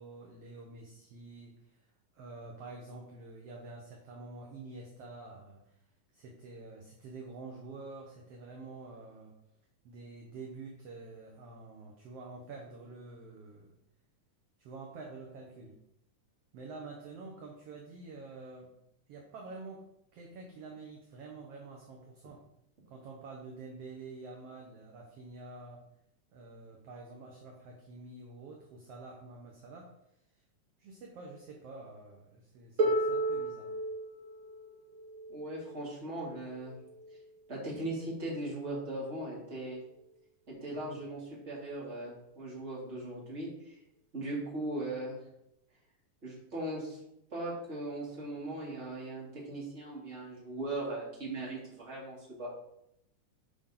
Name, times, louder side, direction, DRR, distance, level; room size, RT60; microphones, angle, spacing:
voice 1, 0.0-5.8 6.1-9.3 9.8-13.7 14.6-15.8 16.5-18.7 19.1-19.8 20.1-22.4 22.9-25.8 26.3-29.9 30.8-33.7 40.7-41.0, right 3 dB, 60° right, 0 dB, 1.9 m, -48 dB
Harp, 32.8-38.6 39.6-39.7, right 2 dB, 45° right, 2.4 m, -35 dB
voice 2, 35.3-36.7 37.5-39.8 40.5-43.8 44.1-45.2 46.2-47.0 47.3-52.5, right 1 dB, 20° right, -5 dB, 2.9 m, -39 dB
10.5 x 5.3 x 3.9 m, 0.79 s
omnidirectional pair, 3.5 m